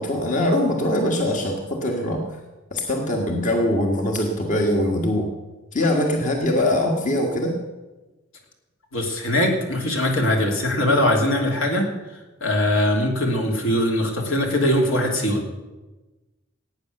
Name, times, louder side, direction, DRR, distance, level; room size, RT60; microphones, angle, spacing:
voice 1, 0.0-2.2 2.7-5.3 5.7-7.6, left 1 dB, 40° left, 1 dB, 1.6 m, -22 dB
voice 2, 8.9-11.8 12.4-15.4, left 1 dB, 75° left, 1 dB, 3.1 m, -21 dB
18.0 x 9.1 x 6.6 m, 1.1 s
head